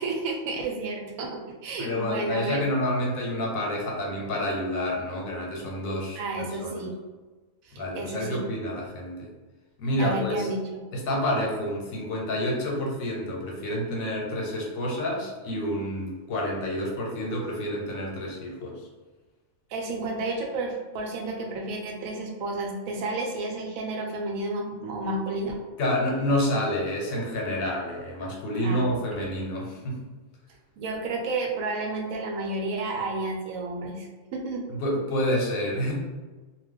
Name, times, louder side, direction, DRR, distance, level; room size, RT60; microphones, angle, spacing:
voice 1, 0.0-2.7 6.2-6.9 7.6-8.4 10.0-10.8 19.7-25.6 28.6-29.3 30.8-34.7, right 2 dB, 85° right, 1 dB, 1.0 m, -31 dB
voice 2, 1.8-6.9 7.8-9.3 9.8-10.5 10.9-18.8 25.8-30.0 34.7-35.9, left 1 dB, 85° left, -2 dB, 1.2 m, -28 dB
2.4 x 2.3 x 3.5 m, 1.3 s
omnidirectional pair, 1.4 m